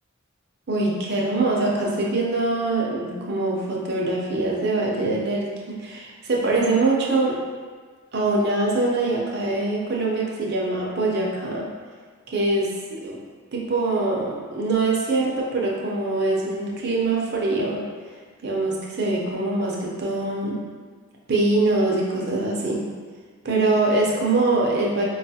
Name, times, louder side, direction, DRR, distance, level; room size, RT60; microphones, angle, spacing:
voice 1, 0.7-7.5 8.1-11.7 12.3-13.2 13.5-17.9 18.4-20.6 21.3-22.9 23.4-25.0, right 2 dB, 55° right, -2 dB, 0.6 m, -23 dB
4.6 x 2.3 x 2.7 m, 1.5 s
head